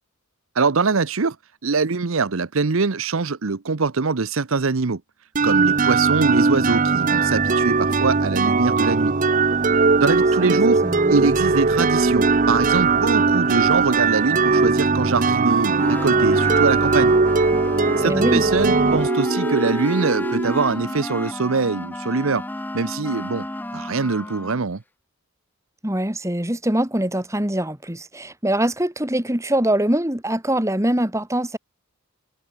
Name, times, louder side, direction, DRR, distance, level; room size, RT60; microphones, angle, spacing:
voice 1, 0.5-1.4 1.6-5.0 5.4-9.1 10.0-10.8 11.1-17.2 18.0-22.5 22.7-23.5 23.7-24.8, right 4 dB, 65° right, 0.8 m, -23 dB
sound 1, 5.3-21.0, right 4 dB, 35° right, 0.7 m, -19 dB
voice 2, 10.1-11.4 18.0-18.4 25.8-31.6, right 1 dB, 15° right, 2.3 m, -23 dB
sound 2, 15.8-24.6, left 1 dB, 10° left, 0.9 m, -32 dB
head